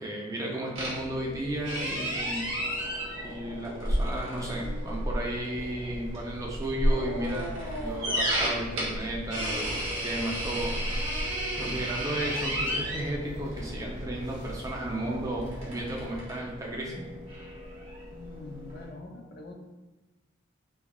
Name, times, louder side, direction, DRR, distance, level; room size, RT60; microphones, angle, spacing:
voice 1, 0.0-2.5 3.2-10.7 11.5-17.1, right 1 dB, 15° right, -2 dB, 0.4 m, -34 dB
sound 1, 0.7-18.9, equal, 70° right, 1.1 m, -33 dB
sound 2, 5.5-16.2, equal, 20° left, 0.8 m, -42 dB
voice 2, 18.1-19.5, left 2 dB, 50° left, 1 dB, 0.4 m, -44 dB
3.4 x 2.3 x 2.2 m, 1.1 s
head